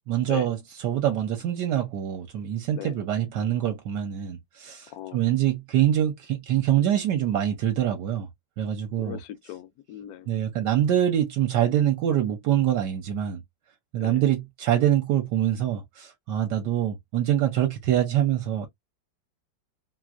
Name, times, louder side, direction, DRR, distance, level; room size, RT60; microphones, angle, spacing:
voice 1, 0.1-0.6 0.8-8.3 8.6-9.2 10.3-13.4 13.9-18.7, right 11 dB, 70° right, 1.2 m, -25 dB
voice 2, 4.9-5.2 9.0-10.3 14.0-14.3, left 12 dB, 70° left, 0.9 m, -39 dB
3.1 x 2.5 x 2.4 m
omnidirectional pair, 2.0 m